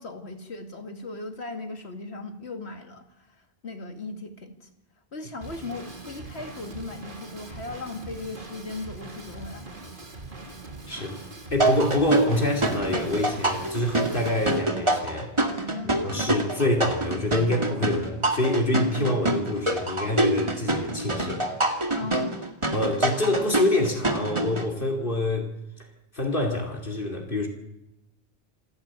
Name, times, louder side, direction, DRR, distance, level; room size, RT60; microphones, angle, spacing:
voice 1, 0.0-4.7 5.1-9.7 10.9-11.1 15.7-16.0 21.9-22.4, left 3 dB, 90° left, 2.6 m, -38 dB
Drum kit / Drum, 5.4-14.6, right 2 dB, 55° right, 2.5 m, -42 dB
voice 2, 10.9-11.2 11.5-15.7 16.0-21.4 22.7-25.5 26.1-27.5, left 1 dB, 55° left, 3.1 m, -26 dB
sound 1, 11.6-24.7, right 2 dB, 30° right, 2.0 m, -26 dB
27.0 x 12.0 x 8.9 m
omnidirectional pair, 1.1 m